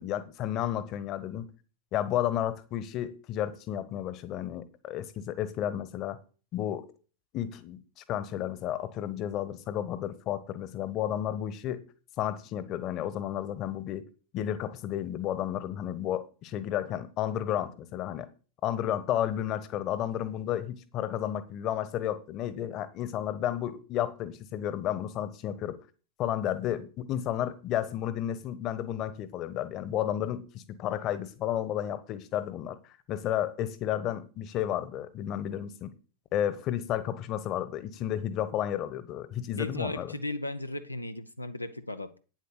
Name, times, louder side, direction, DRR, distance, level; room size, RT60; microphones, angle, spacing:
voice 1, 0.0-1.4 1.9-6.2 6.5-6.9 7.3-11.8 12.2-14.1 14.3-18.3 18.6-25.8 26.2-32.8 33.1-35.9 36.3-40.2, left 11 dB, 35° left, 1.2 m, -32 dB
voice 2, 39.6-42.2, left 1 dB, 85° left, 0.7 m, -36 dB
9.3 x 7.6 x 6.7 m
figure-of-eight pair, 90°, 0 cm